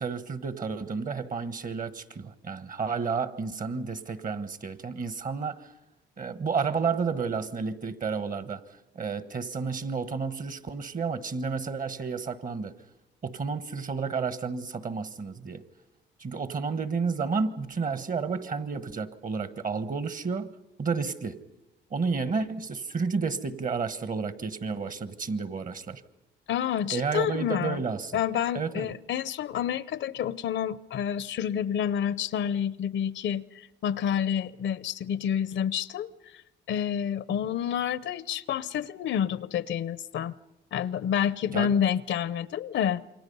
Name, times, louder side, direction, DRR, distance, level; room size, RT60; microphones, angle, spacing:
voice 1, 0.0-5.7 6.2-8.6 8.9-12.7 13.2-15.6 16.2-20.5 20.8-21.4 21.9-26.0 26.9-28.2 28.5-28.9 41.5-41.7, right 5 dB, 45° right, 1.4 m, -31 dB
voice 2, 26.5-27.8 28.1-36.1 36.7-40.3 40.7-43.0, left 9 dB, 70° left, 0.7 m, -29 dB
28.0 x 23.0 x 5.5 m
cardioid pair, 90°, 20 cm